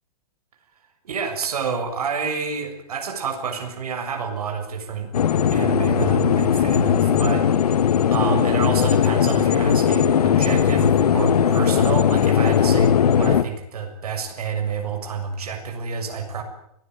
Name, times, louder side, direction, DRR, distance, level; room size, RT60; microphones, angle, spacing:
voice 1, 1.0-5.1 5.5-16.4, right 5 dB, 80° right, 4 dB, 7.0 m, -28 dB
sound 1, 5.1-13.4, left 8 dB, 85° left, 1.7 m, -18 dB
28.5 x 19.5 x 9.4 m, 0.77 s
hypercardioid pair, 175°, 19 cm